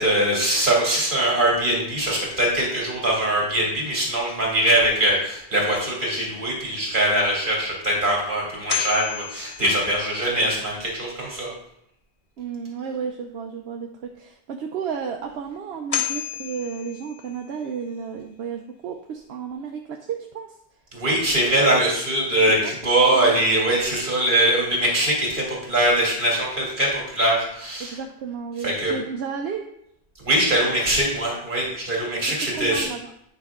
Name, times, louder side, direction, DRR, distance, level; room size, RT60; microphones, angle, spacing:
voice 1, 0.0-11.5 20.9-28.0 28.6-28.9 30.2-32.9, right 1 dB, 50° right, -3 dB, 2.4 m, -22 dB
sound 1, 8.7-10.6 15.5-15.6 15.9-17.8, left 10 dB, 40° left, 0.6 m, -31 dB
voice 2, 12.4-20.5 22.6-22.8 23.1-23.3 27.8-29.7 31.7-31.8 32.5-33.1, right 6 dB, 75° right, 3 dB, 0.9 m, -32 dB
8.8 x 5.2 x 3.6 m, 0.76 s
omnidirectional pair, 1.1 m